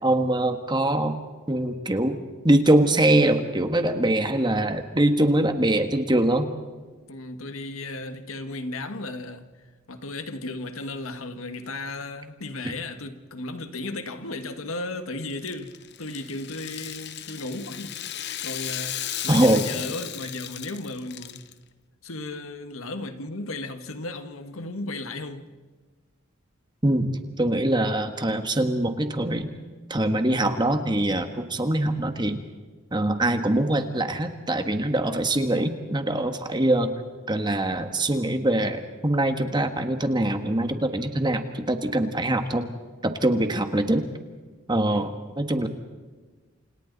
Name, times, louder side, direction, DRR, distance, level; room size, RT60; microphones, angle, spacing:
voice 1, 0.0-1.2 1.5-2.2 2.4-6.5 19.3-19.6 26.8-29.5 29.9-32.4 32.9-36.9 37.3-42.7 43.0-44.1 44.7-45.1 45.4-45.7, right 1 dB, 20° right, 1.5 m, -23 dB
voice 2, 7.1-9.4 9.9-15.7 16.0-21.4 22.0-25.5 44.9-45.2, left 2 dB, 85° left, 1.7 m, -35 dB
Rattle (instrument), 15.3-21.5, left 11 dB, 55° left, 0.9 m, -35 dB
28.5 x 28.0 x 4.1 m
head